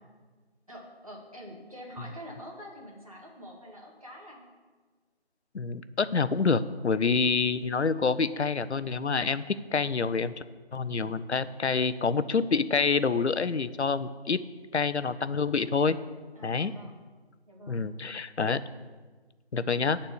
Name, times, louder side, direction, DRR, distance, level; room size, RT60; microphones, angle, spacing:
voice 1, 0.7-4.4 16.4-17.0 17.5-17.8, equal, 35° right, -3 dB, 1.8 m, -46 dB
voice 2, 5.5-9.4 9.7-10.3 10.7-14.4 14.7-16.0 16.4-16.7 17.7-18.6 19.5-20.0, left 5 dB, 90° left, 14 dB, 0.6 m, -27 dB
12.5 x 4.3 x 7.0 m, 1.4 s
figure-of-eight pair, 180°, 33 cm